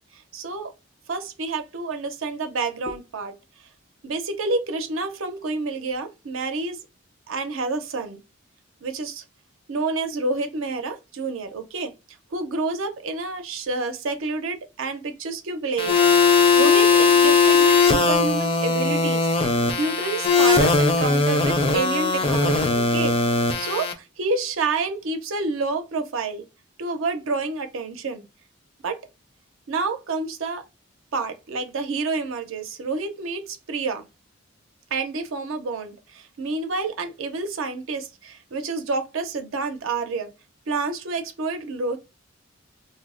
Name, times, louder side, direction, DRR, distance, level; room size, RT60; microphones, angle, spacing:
voice 1, 0.3-0.7 1.1-3.3 4.0-6.8 7.3-8.2 8.8-9.2 9.7-11.9 12.3-23.1 23.6-26.4 26.8-28.3 28.8-29.0 29.7-30.6 31.1-34.0 34.9-40.3 40.7-42.0, right 3 dB, 75° right, 0.5 m, -28 dB
sound 1, 15.8-23.9, left 4 dB, 30° left, 0.4 m, -19 dB
2.7 x 2.0 x 3.6 m
head